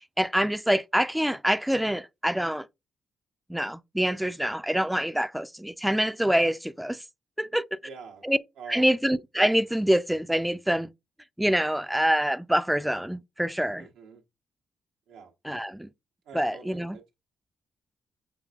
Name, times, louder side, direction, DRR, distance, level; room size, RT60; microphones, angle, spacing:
voice 1, 0.2-2.7 3.5-7.0 7.4-7.6 8.2-8.4 8.7-10.9 11.4-13.9 15.4-15.9 16.3-17.0, equal, 5° right, 0.4 m, -25 dB
voice 2, 7.8-8.2 8.6-8.9 13.7-14.2 15.1-15.3 16.2-17.2, right 6 dB, 85° right, 1.0 m, -45 dB
6.1 x 3.3 x 2.4 m
supercardioid pair, 50°, 0 cm